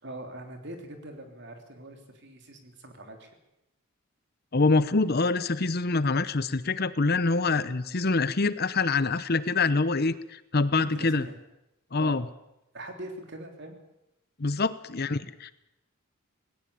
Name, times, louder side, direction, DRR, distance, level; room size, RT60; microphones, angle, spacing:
voice 1, 0.0-3.4 10.8-11.4 12.0-12.2 12.7-13.8, right 1 dB, 55° right, 5 dB, 3.4 m, -42 dB
voice 2, 4.5-11.2 11.9-12.2 14.4-15.5, left 3 dB, 45° left, 15 dB, 0.8 m, -25 dB
19.0 x 18.0 x 8.6 m, 0.88 s
head